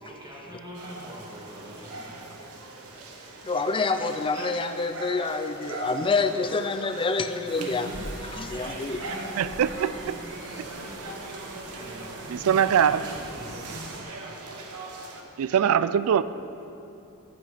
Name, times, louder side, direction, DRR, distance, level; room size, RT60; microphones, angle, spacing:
voice 1, 0.0-2.2 11.7-12.1 12.4-13.8, equal, 20° right, -5 dB, 1.9 m, -44 dB
sound 1, 0.7-15.2, right 2 dB, 90° right, 1.0 m, -41 dB
voice 2, 3.4-9.1, left 3 dB, 25° left, 9 dB, 0.4 m, -27 dB
sound 2, 7.4-14.0, right 1 dB, 55° right, 1.1 m, -40 dB
voice 3, 9.4-10.2 12.3-13.0 15.4-16.2, right 8 dB, 70° right, 14 dB, 0.3 m, -22 dB
8.3 x 7.8 x 5.0 m, 2.8 s
head